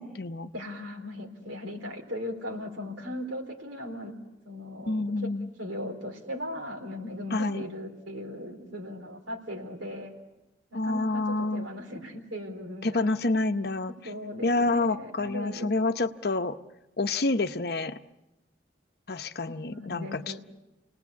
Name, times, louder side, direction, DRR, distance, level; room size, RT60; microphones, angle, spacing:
voice 1, 0.0-0.5 4.9-5.5 7.3-7.6 10.7-11.7 12.8-13.9 14.4-16.6 17.0-18.0 19.1-20.4, left 2 dB, 55° left, 9 dB, 0.8 m, -28 dB
voice 2, 0.5-4.1 4.4-5.3 5.6-10.1 10.7-13.1 14.0-15.7 17.0-17.1 19.4-20.4, left 1 dB, 85° right, 3 dB, 4.1 m, -38 dB
29.0 x 19.5 x 8.4 m, 0.97 s
head